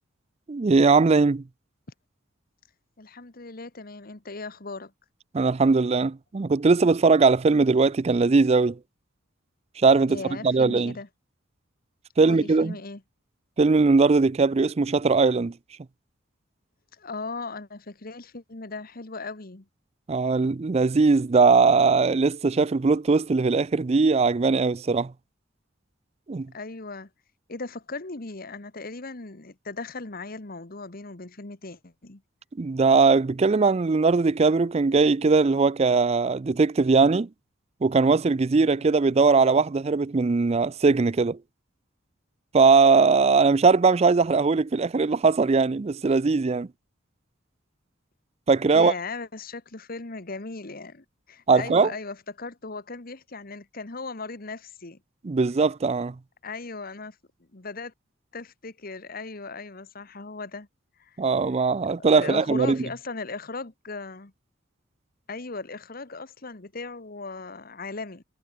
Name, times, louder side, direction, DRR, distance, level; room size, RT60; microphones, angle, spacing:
voice 1, 0.5-1.4 5.3-8.8 9.8-10.9 12.2-12.7 13.6-15.5 20.1-25.1 26.3-26.5 32.6-37.3 37.8-41.4 42.5-46.7 48.5-48.9 51.5-51.9 55.2-56.1 61.2-62.8, right 4 dB, 30° right, 0.4 m, -20 dB
voice 2, 3.0-4.9 10.1-11.1 12.2-13.0 16.9-19.7 26.5-27.1 27.5-32.2 38.8-38.9 48.7-55.0 56.4-57.2 57.5-57.9 58.3-60.7 61.0-61.2 62.0-64.3 65.3-68.2, left 3 dB, 45° left, 1.4 m, -37 dB
head